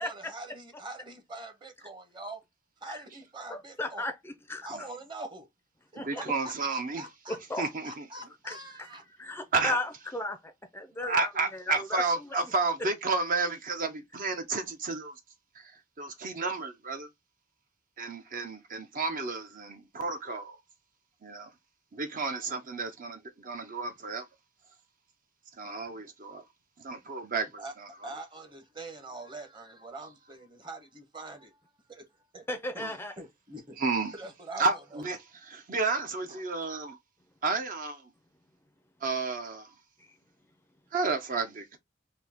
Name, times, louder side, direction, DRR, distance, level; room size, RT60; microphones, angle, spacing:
voice 1, 0.0-2.4 2.8-4.1 4.6-5.5 5.9-9.0 27.6-27.7 28.0-31.6 31.9-32.1 32.3-32.4 32.7-32.8 33.2-33.8 34.1-35.0 36.3-36.8, right 2 dB, 25° right, 1.0 m, -44 dB
voice 2, 3.5-4.7 6.0-6.2 7.3-7.7 8.4-8.9 9.2-12.0 32.5-33.1, left 2 dB, 10° left, 0.4 m, -35 dB
voice 3, 6.0-7.0 7.6-8.0 9.5-9.8 11.0-15.1 15.6-15.7 16.0-17.1 18.0-20.6 21.2-21.5 21.9-24.2 25.6-26.4 26.8-28.1 32.8-32.9 33.8-34.1 34.6-35.2 35.5-37.0 37.4-38.1 39.0-39.7 40.9-41.8, right 3 dB, 45° right, 0.6 m, -31 dB
3.9 x 2.7 x 3.5 m
head